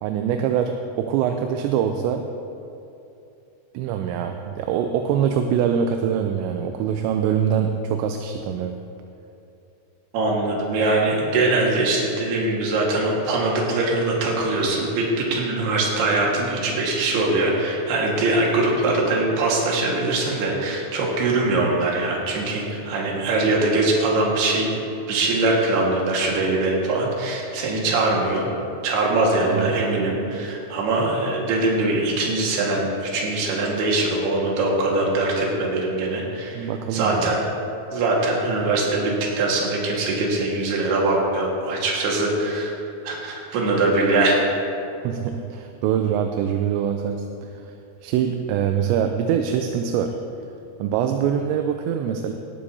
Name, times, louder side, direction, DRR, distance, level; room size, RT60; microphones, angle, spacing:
voice 1, 0.0-2.2 3.7-8.8 29.5-29.8 36.5-37.3 45.0-47.7 48.0-50.2 50.8-52.3, right 8 dB, 85° right, 5 dB, 2.8 m, -24 dB
voice 2, 10.1-24.7 25.1-28.5 28.8-37.4 37.9-39.1 39.4-42.7 43.0-44.3, right 2 dB, 65° right, -2 dB, 3.6 m, -22 dB
18.5 x 12.5 x 2.8 m, 2.7 s
omnidirectional pair, 5.3 m